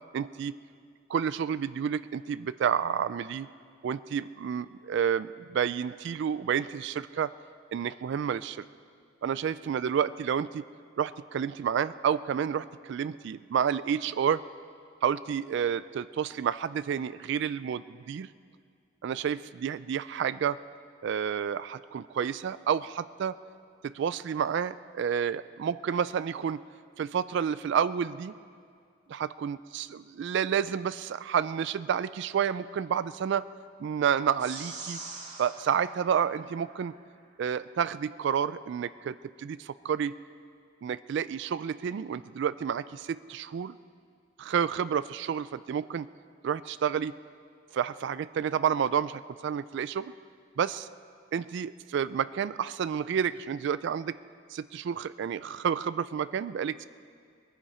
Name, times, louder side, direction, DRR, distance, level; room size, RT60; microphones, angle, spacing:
voice 1, 0.1-0.6 1.1-3.5 3.8-7.3 7.7-8.6 9.2-10.6 11.0-14.4 15.0-18.3 19.0-20.6 21.0-23.4 23.8-26.6 27.0-28.3 29.1-33.5 33.8-35.0 35.4-36.9 37.4-40.2 40.8-43.7 44.4-46.1 46.4-47.2 47.7-50.1 50.6-50.9 51.3-54.2 54.5-56.8, right 8 dB, 65° right, 15 dB, 0.3 m, -30 dB
sound 1, 34.4-37.0, right 4 dB, 40° right, 1.9 m, -44 dB
20.5 x 14.5 x 4.3 m, 2.2 s
head